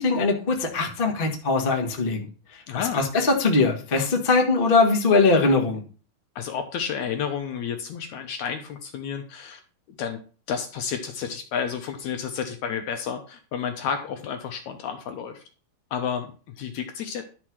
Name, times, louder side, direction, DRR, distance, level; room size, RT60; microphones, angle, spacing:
voice 1, 0.0-2.2 2.7-5.8, left 3 dB, 55° left, 1 dB, 0.6 m, -21 dB
voice 2, 2.7-3.0 6.4-9.6 10.0-10.2 10.5-15.4 15.9-17.2, left 7 dB, 70° left, 6 dB, 1.8 m, -31 dB
11.5 x 4.4 x 6.1 m, 0.39 s
omnidirectional pair, 4.2 m